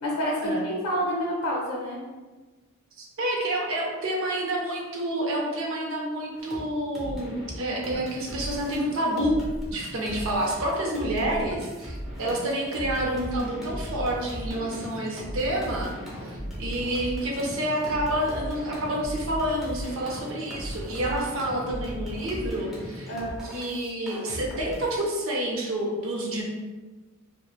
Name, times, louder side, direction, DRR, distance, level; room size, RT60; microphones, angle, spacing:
voice 1, 0.0-2.0 23.1-23.4, equal, 75° left, -3 dB, 0.5 m, -28 dB
voice 2, 3.0-9.4 9.7-23.1 23.5-26.4, right 1 dB, 65° right, -1 dB, 0.6 m, -29 dB
sound 1, 6.3-6.6 6.9-25.0, equal, ahead, 0.5 m, -37 dB
3.1 x 2.1 x 2.2 m, 1.3 s
head